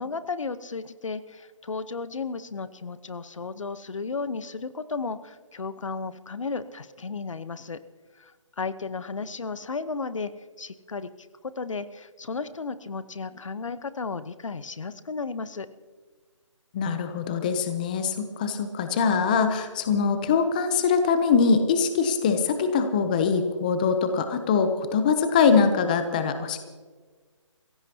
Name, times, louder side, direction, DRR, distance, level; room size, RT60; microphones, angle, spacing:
voice 1, 0.0-7.8 8.2-8.3 8.6-10.3 10.6-11.1 11.6-15.7, left 4 dB, 75° left, 13 dB, 1.0 m, -34 dB
voice 2, 16.7-26.6, left 5 dB, 15° left, 8 dB, 0.6 m, -23 dB
25.5 x 16.0 x 2.9 m, 1.4 s
hypercardioid pair, 165°, 16 cm